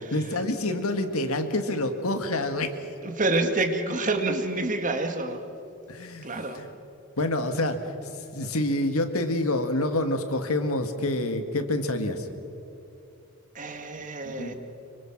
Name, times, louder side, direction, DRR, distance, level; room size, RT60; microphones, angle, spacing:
voice 1, 0.0-2.7 5.9-6.3 6.5-6.7 7.2-12.3 14.2-14.5, left 1 dB, 80° left, 7 dB, 1.9 m, -27 dB
voice 2, 3.0-5.4 6.2-6.6 13.5-14.5, right 2 dB, 35° right, 6 dB, 1.8 m, -27 dB
26.0 x 24.5 x 6.1 m, 2.7 s
head